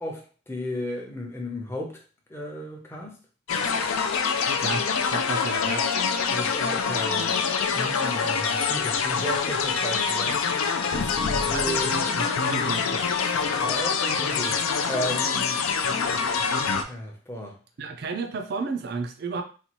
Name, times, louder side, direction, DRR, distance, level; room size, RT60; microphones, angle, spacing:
voice 1, 0.0-2.0 2.3-3.2 6.3-7.3 7.7-10.5 10.9-11.9 13.5-14.6 14.9-15.6 16.4-17.6, left 1 dB, 10° left, 0 dB, 0.6 m, -34 dB
sound 1, 3.5-16.8, left 5 dB, 75° left, 0.4 m, -25 dB
voice 2, 4.6-5.9 11.5-13.0 17.8-19.4, right 4 dB, 50° right, 6 dB, 0.4 m, -32 dB
4.1 x 2.3 x 2.9 m, 0.37 s
head